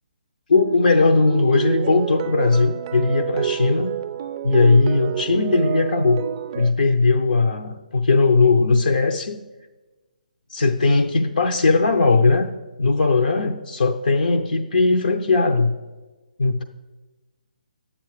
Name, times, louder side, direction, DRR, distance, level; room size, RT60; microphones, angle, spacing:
voice 1, 0.5-3.9 4.4-6.2 6.5-9.4 10.5-12.5 12.8-15.8 16.4-16.6, left 3 dB, 75° left, 6 dB, 0.7 m, -18 dB
sound 1, 0.5-6.7, right 9 dB, 35° right, 0.5 m, -28 dB
10.5 x 8.8 x 4.8 m, 1.2 s
figure-of-eight pair, 145°, 5 cm